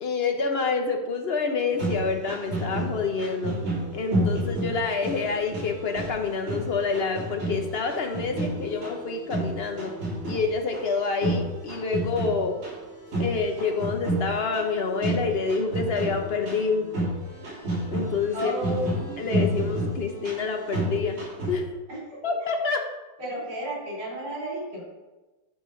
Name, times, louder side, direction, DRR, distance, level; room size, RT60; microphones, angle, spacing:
voice 1, 0.0-3.5 3.9-9.9 10.2-12.5 13.2-16.9 17.9-18.5 19.2-21.2 21.5-21.8 22.2-22.8, left 4 dB, 60° left, 4 dB, 0.6 m, -27 dB
sound 1, 1.7-21.6, right 1 dB, 65° right, 4.1 m, -31 dB
voice 2, 18.3-19.1 21.9-22.3 23.2-24.8, equal, 80° right, -4 dB, 4.8 m, -33 dB
11.5 x 5.0 x 5.2 m, 1.1 s
omnidirectional pair, 2.3 m